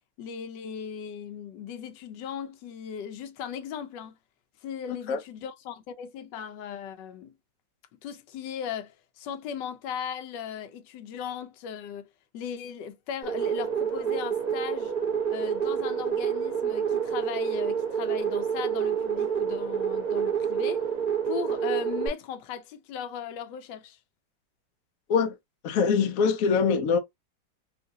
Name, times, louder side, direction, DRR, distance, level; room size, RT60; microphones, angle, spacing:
voice 1, 0.2-4.2 4.6-7.4 8.0-12.1 12.3-14.9 15.3-20.9 21.2-24.0, left 8 dB, 85° left, 1.3 m, -37 dB
sound 1, 13.2-22.1, right 7 dB, 30° right, 0.9 m, -28 dB
voice 2, 25.6-27.0, left 5 dB, 65° left, 1.0 m, -23 dB
3.7 x 2.5 x 2.7 m
omnidirectional pair, 1.9 m